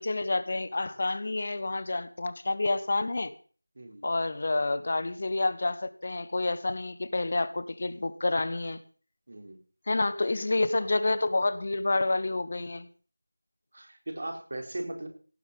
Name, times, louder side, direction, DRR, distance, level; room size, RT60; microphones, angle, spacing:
voice 1, 0.0-3.3 4.0-8.8 9.9-12.9, left 2 dB, 35° left, 13 dB, 1.4 m, -29 dB
voice 2, 3.8-4.1 9.3-9.6 10.8-10.9 13.7-15.1, right 1 dB, 45° right, 3 dB, 4.5 m, -38 dB
18.0 x 7.4 x 7.4 m, 0.40 s
figure-of-eight pair, 170°, 0 cm